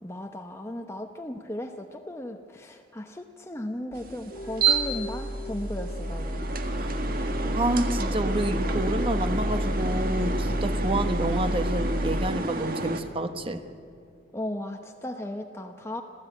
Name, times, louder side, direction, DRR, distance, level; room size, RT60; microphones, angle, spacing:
voice 1, 0.0-6.5 14.3-16.0, left 1 dB, 15° left, 4 dB, 0.9 m, -36 dB
sound 1, 3.9-12.3, equal, 45° left, 2.0 m, -30 dB
sound 2, 4.0-13.0, right 4 dB, 50° right, 1.5 m, -31 dB
voice 2, 7.5-13.6, right 1 dB, 30° right, 9 dB, 1.1 m, -29 dB
26.5 x 15.0 x 9.1 m, 2.4 s
head